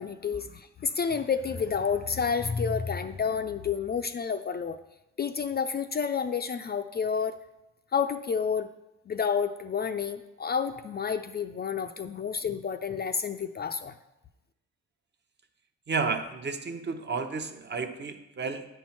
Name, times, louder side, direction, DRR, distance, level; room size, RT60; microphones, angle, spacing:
voice 1, 0.0-4.8 5.2-7.4 7.9-8.7 9.1-13.9, left 6 dB, 35° left, 9 dB, 0.4 m, -30 dB
voice 2, 15.9-18.7, right 4 dB, 35° right, 6 dB, 0.9 m, -32 dB
9.1 x 4.5 x 5.8 m, 0.94 s
cardioid pair, 90°, 30 cm